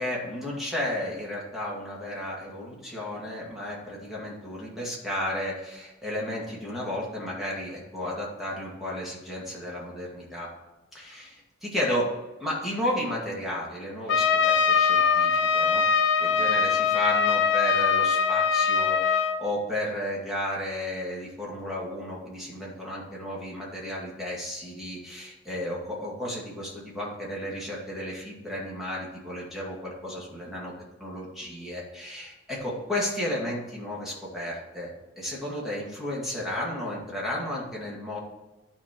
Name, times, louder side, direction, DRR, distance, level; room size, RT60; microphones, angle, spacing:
voice 1, 0.0-10.5 10.9-12.1 12.4-15.8 16.2-30.7 31.0-38.2, left 1 dB, ahead, -6 dB, 2.3 m, -33 dB
Trumpet, 14.1-19.4, left 6 dB, 60° left, 0.6 m, -22 dB
11.0 x 4.5 x 4.5 m, 1.1 s
head